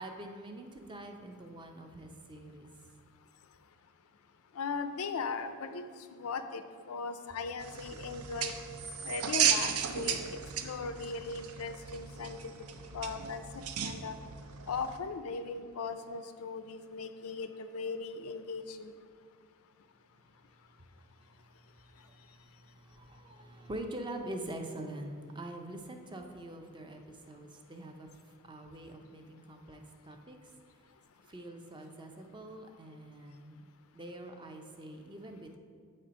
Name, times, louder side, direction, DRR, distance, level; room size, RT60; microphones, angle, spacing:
voice 1, 0.0-2.7 20.8-28.1 28.4-30.5 31.2-33.6 33.9-35.6, right 1 dB, 20° right, 4 dB, 0.5 m, -45 dB
voice 2, 4.6-5.8 6.1-6.6 6.9-8.6 9.0-10.2 10.6-12.4 12.9-13.4 13.8-14.1 14.7-18.9, left 4 dB, 75° left, 9 dB, 0.4 m, -38 dB
sound 1, 7.6-15.0, right 8 dB, 80° right, 0.5 m, -35 dB
7.5 x 4.3 x 5.1 m, 2.1 s
head